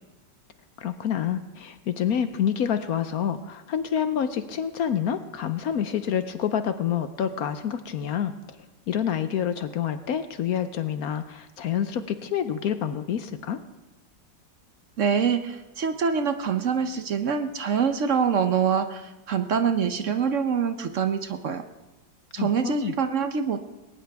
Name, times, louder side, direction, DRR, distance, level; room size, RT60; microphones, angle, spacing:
voice 1, 0.8-8.3 8.9-13.6 22.4-22.9, left 8 dB, 65° left, 10 dB, 1.1 m, -27 dB
voice 2, 15.0-21.6 22.3-23.6, right 6 dB, 55° right, 8 dB, 0.9 m, -25 dB
20.0 x 18.5 x 3.5 m, 1.1 s
omnidirectional pair, 2.0 m